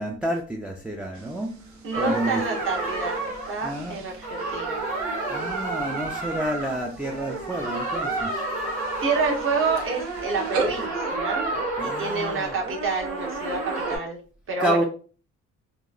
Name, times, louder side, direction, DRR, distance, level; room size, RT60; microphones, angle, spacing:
voice 1, 0.0-1.5 2.0-2.4 3.6-4.0 5.3-8.4 11.8-12.5 14.6-14.8, right 1 dB, 5° right, 1 dB, 0.3 m, -29 dB
sound 1, 1.1-10.9, right 4 dB, 65° right, 0.7 m, -39 dB
voice 2, 1.8-3.2 3.5-4.8 9.0-11.4 11.8-14.2 14.5-14.8, right 4 dB, 45° right, 0 dB, 0.9 m, -28 dB
sound 2, 1.9-14.0, right 2 dB, 80° right, 1.2 m, -30 dB
2.9 x 2.2 x 2.4 m, 0.38 s
cardioid pair, 90°, 30 cm